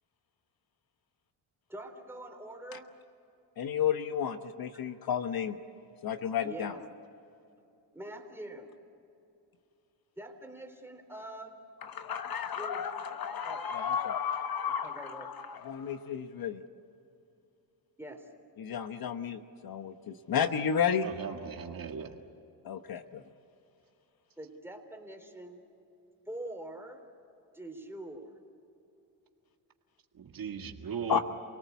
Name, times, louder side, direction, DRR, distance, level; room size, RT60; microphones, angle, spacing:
voice 1, 1.7-2.9 4.7-4.8 6.4-6.8 7.9-8.7 10.2-11.6 12.6-13.1 13.4-13.6 14.0-14.1 14.8-15.3 18.0-18.3 24.4-25.6 26.3-27.0 27.5-28.4, right 1 dB, 5° right, 4 dB, 3.7 m, -44 dB
voice 2, 3.6-5.6 6.0-6.7 11.8-16.6 18.6-21.1 22.6-23.2 31.1-31.2, left 8 dB, 50° left, 9 dB, 1.1 m, -32 dB
voice 3, 21.0-22.1 30.1-31.2, right 6 dB, 45° right, 4 dB, 1.9 m, -38 dB
28.5 x 18.5 x 8.2 m, 2.8 s
cardioid pair, 90°, 46 cm